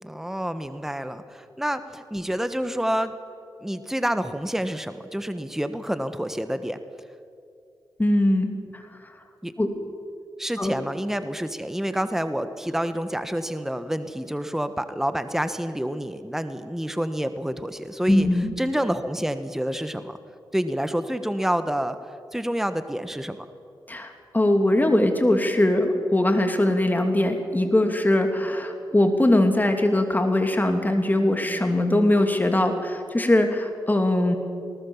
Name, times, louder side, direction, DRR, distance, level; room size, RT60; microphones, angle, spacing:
voice 1, 0.0-3.1 3.6-6.8 9.4-9.5 10.4-18.3 18.6-20.2 20.5-22.0 22.3-23.5, equal, 5° right, 10 dB, 1.3 m, -28 dB
voice 2, 8.0-8.8 9.6-9.7 10.6-10.8 18.1-18.5 23.9-34.4, left 1 dB, 20° left, 5 dB, 2.9 m, -21 dB
19.5 x 19.0 x 7.3 m, 2.5 s
cardioid pair, 50°, 8 cm